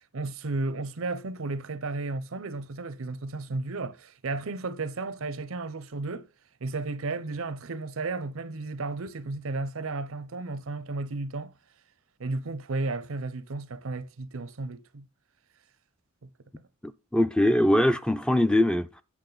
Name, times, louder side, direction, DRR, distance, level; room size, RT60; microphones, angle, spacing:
voice 1, 0.1-6.3 6.6-11.5 12.2-15.0, right 3 dB, 80° right, 0.7 m, -33 dB
voice 2, 16.8-18.9, left 1 dB, 5° left, 0.4 m, -22 dB
8.7 x 6.2 x 3.9 m
head